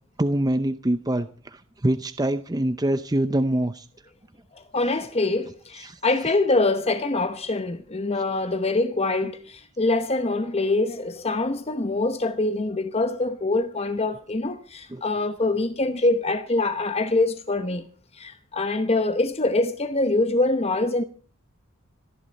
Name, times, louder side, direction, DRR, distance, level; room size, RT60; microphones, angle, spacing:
voice 1, 0.2-3.9 5.8-6.0 14.9-15.0, right 1 dB, 20° right, 0.6 m, -25 dB
voice 2, 4.5-17.8 18.1-21.0, left 2 dB, 30° left, 1.0 m, -24 dB
26.5 x 11.0 x 4.1 m
head